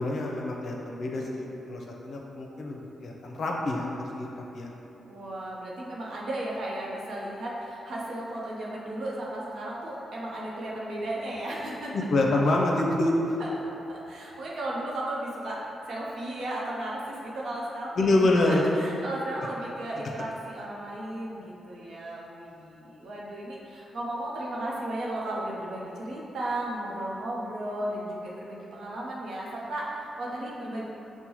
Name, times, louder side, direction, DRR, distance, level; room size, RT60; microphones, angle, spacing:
voice 1, 0.0-4.8 11.9-13.4 18.0-18.6 19.4-19.5, left 2 dB, 60° left, -1 dB, 0.5 m, -26 dB
voice 2, 5.1-11.9 13.4-30.8, right 1 dB, 75° right, -4 dB, 0.7 m, -35 dB
5.4 x 2.2 x 3.0 m, 3.0 s
supercardioid pair, 60°, 0 cm